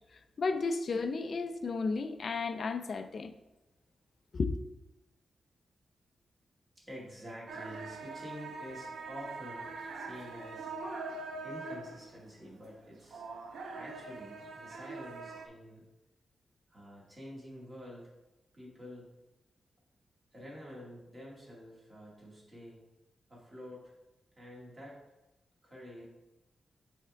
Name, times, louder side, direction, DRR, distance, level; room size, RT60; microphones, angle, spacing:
voice 1, 0.4-3.3 4.3-4.6, left 4 dB, 50° left, 0.5 m, -33 dB
voice 2, 6.8-10.7 11.4-13.2 13.7-15.8 16.7-18.1 18.5-19.1 20.3-22.8 23.3-23.9 24.4-25.0 25.6-26.1, equal, 25° right, 1.9 m, -48 dB
sound 1, 7.5-15.5, right 3 dB, 90° right, 0.7 m, -43 dB
8.8 x 3.6 x 3.5 m
wide cardioid pair, 135°, 0 cm